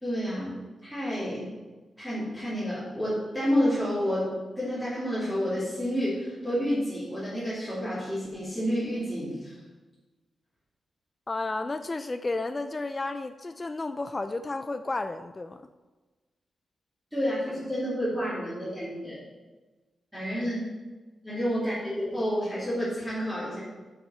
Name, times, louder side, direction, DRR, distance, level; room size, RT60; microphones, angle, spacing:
voice 1, 0.0-0.5 0.8-1.5 2.0-9.6 17.1-19.2 20.1-20.6 21.2-23.6, equal, 5° right, -10 dB, 2.5 m, -29 dB
voice 2, 11.3-15.7, left 2 dB, 20° left, 9 dB, 0.3 m, -32 dB
11.5 x 5.8 x 4.3 m, 1.2 s
wide cardioid pair, 150°, 0 cm